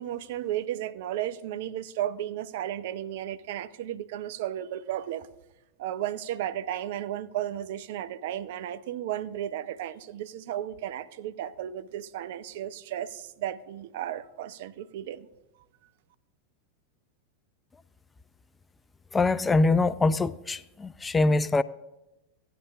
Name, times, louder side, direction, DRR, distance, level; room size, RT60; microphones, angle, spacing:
voice 1, 0.0-5.3 5.8-15.3, right 11 dB, 60° right, 0.5 m, -34 dB
voice 2, 19.1-21.6, left 3 dB, 15° left, 0.4 m, -23 dB
16.5 x 10.0 x 2.4 m
figure-of-eight pair, 90°, 0 cm